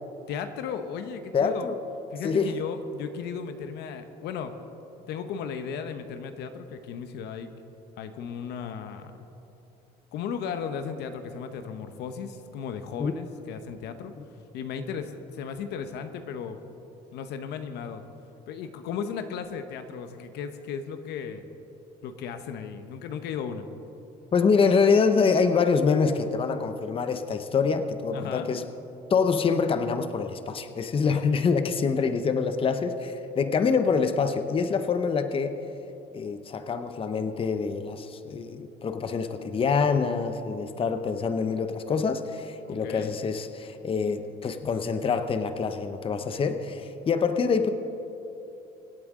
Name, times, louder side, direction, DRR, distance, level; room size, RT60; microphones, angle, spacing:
voice 1, 0.3-1.7 2.1-4.5 5.1-7.5 8.0-9.1 10.1-14.1 14.5-16.6 17.1-18.0 18.5-21.4 22.0-23.7 28.1-28.5 42.7-43.1, left 7 dB, 80° left, 8 dB, 0.9 m, -35 dB
voice 2, 1.3-1.8 2.2-2.5 13.0-13.1 14.2-14.3 24.3-28.7 29.1-35.6 36.1-47.7, left 5 dB, 35° left, 9 dB, 0.8 m, -25 dB
24.5 x 8.6 x 3.7 m, 3.0 s
cardioid pair, 110°, 17 cm